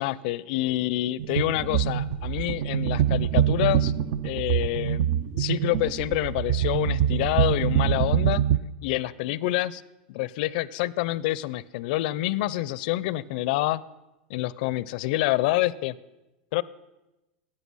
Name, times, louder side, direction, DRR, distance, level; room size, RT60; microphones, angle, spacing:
voice 1, 0.0-3.9 4.2-5.0 5.4-8.4 8.8-9.8 10.1-13.8 14.3-16.0 16.5-16.6, left 16 dB, 60° left, 20 dB, 0.5 m, -27 dB
sound 1, 1.2-8.6, right 10 dB, 55° right, 0.6 m, -25 dB
15.5 x 9.1 x 5.5 m, 1.0 s
supercardioid pair, 130°, 5 cm